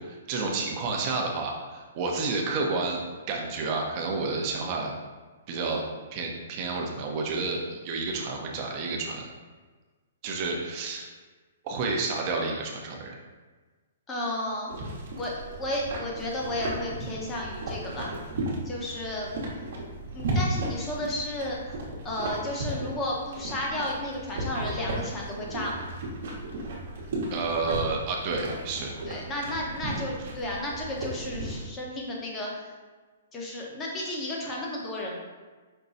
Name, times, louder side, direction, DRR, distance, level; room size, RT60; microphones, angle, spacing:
voice 1, 0.0-3.0 3.3-4.9 5.5-5.9 6.1-9.3 10.2-11.1 11.6-13.1 27.3-28.9, right 3 dB, 35° right, 0 dB, 0.8 m, -30 dB
voice 2, 14.1-14.7 15.2-18.1 18.6-19.3 20.1-21.6 22.0-25.8 29.1-32.7 33.3-35.2, left 1 dB, 15° left, -3 dB, 1.0 m, -33 dB
sound 1, 14.7-31.7, right 1 dB, 60° right, 1.1 m, -35 dB
5.4 x 2.2 x 4.0 m, 1.3 s
hypercardioid pair, 145°, 0 cm